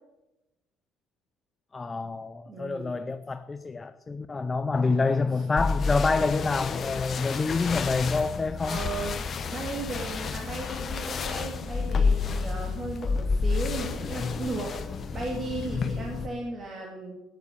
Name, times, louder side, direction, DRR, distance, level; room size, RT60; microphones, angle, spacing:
voice 1, 1.7-8.8, left 4 dB, 20° left, 0.5 m, -27 dB
voice 2, 2.5-2.9 5.3-5.4 8.6-9.2 9.5-17.2, right 3 dB, 30° right, 2.1 m, -36 dB
sound 1, 5.6-16.3, left 5 dB, 35° left, 0.9 m, -30 dB
9.8 x 9.0 x 6.9 m
cardioid pair, 130°, 0 cm